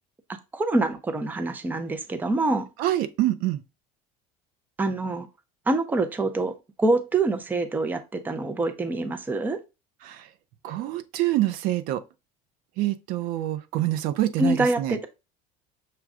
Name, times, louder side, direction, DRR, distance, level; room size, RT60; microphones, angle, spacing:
voice 1, 0.5-2.7 4.8-5.3 5.7-6.5 6.8-9.6 14.4-15.1, right 2 dB, 10° right, 0.6 m, -25 dB
voice 2, 2.8-3.6 10.0-10.3 10.6-12.0 12.8-15.0, right 15 dB, 65° right, 0.6 m, -26 dB
6.1 x 2.3 x 3.6 m
supercardioid pair, 130°, 16 cm